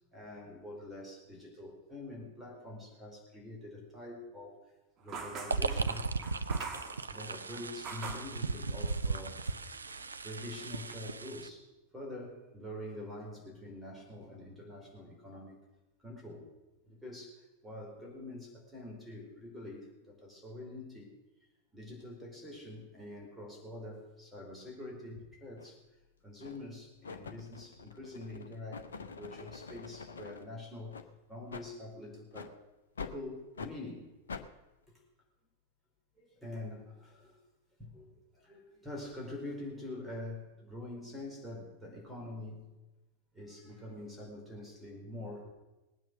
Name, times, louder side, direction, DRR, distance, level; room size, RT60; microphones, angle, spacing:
voice 1, 0.1-4.6 5.0-6.1 7.1-9.5 10.2-11.7 11.9-15.6 16.0-16.5 16.9-21.1 21.7-25.8 26.2-31.0 31.3-32.5 33.0-34.1 36.2-37.4 37.8-42.7 43.3-45.5, left 1 dB, 5° right, -1 dB, 4.6 m, -45 dB
sound 1, 5.1-8.4 8.9-9.6 9.9-10.9, right 5 dB, 30° right, 2.1 m, -45 dB
sound 2, 5.5-11.5, right 4 dB, 75° right, 0.6 m, -36 dB
sound 3, 25.6-25.7 26.4-26.7 27.0-30.4 30.9-31.1 31.5-31.7 32.3-32.5 33.0-33.2 33.6-33.7 34.3-34.5, left 5 dB, 70° left, 0.9 m, -45 dB
19.0 x 9.2 x 6.4 m, 1.1 s
figure-of-eight pair, 90°, 0 cm